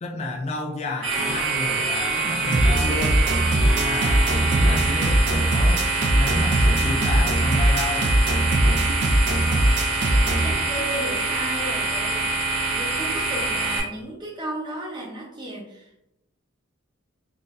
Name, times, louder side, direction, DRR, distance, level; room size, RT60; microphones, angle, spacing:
voice 1, 0.0-3.3 3.6-8.1, left 2 dB, 30° left, 1 dB, 0.3 m, -31 dB
sound 1, 1.0-13.8, right 3 dB, 70° right, 1.3 m, -25 dB
sound 2, 2.5-10.5, right 1 dB, 55° right, 0.5 m, -21 dB
voice 2, 9.0-9.7 10.1-12.3 12.7-16.1, right 1 dB, 20° right, -2 dB, 0.7 m, -35 dB
3.8 x 2.5 x 2.5 m, 0.82 s
head